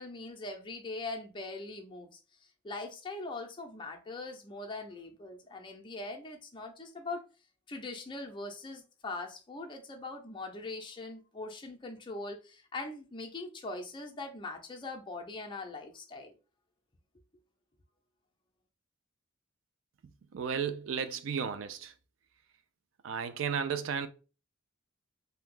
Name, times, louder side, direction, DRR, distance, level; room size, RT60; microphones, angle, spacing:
voice 1, 0.0-2.2 2.6-7.2 7.7-16.3, left 2 dB, 25° left, 0.5 m, -41 dB
voice 2, 20.3-21.9 23.0-24.1, right 7 dB, 65° right, 0.4 m, -33 dB
2.7 x 2.2 x 3.6 m
head